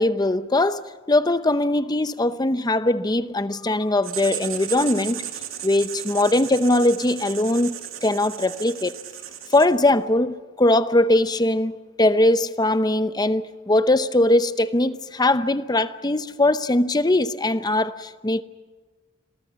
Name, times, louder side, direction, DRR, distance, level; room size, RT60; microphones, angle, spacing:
voice 1, 0.0-5.2 5.6-9.0 9.5-18.4, left 1 dB, 20° left, 0.8 m, -21 dB
Writing, 4.0-10.0, right 11 dB, 75° right, 2.6 m, -35 dB
28.5 x 23.0 x 5.9 m
head